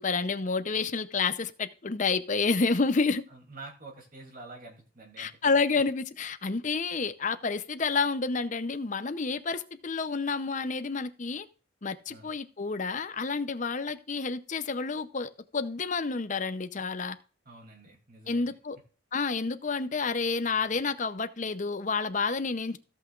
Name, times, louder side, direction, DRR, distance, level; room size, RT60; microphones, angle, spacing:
voice 1, 0.0-3.2 5.2-11.5 11.8-17.2 18.3-18.8 19.1-22.8, left 4 dB, 35° left, 0.6 m, -29 dB
voice 2, 3.3-5.6 12.1-12.3 17.4-18.6, right 2 dB, 45° right, 2.8 m, -48 dB
16.5 x 5.8 x 2.4 m
head